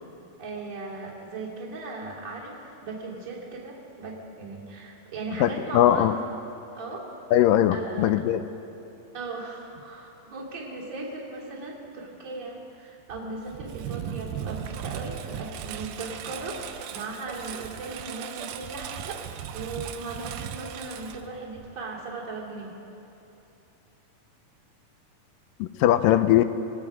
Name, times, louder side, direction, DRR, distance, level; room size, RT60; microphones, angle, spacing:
voice 1, 0.4-6.1 6.7-7.0 7.7-8.1 9.1-22.8, right 3 dB, 25° right, -4 dB, 3.3 m, -37 dB
voice 2, 5.4-6.1 7.3-8.4 25.6-26.4, left 12 dB, 80° left, 11 dB, 2.2 m, -20 dB
Engine, 13.1-21.8, right 9 dB, 90° right, 2.7 m, -37 dB
28.0 x 19.5 x 5.2 m, 2.9 s
omnidirectional pair, 4.2 m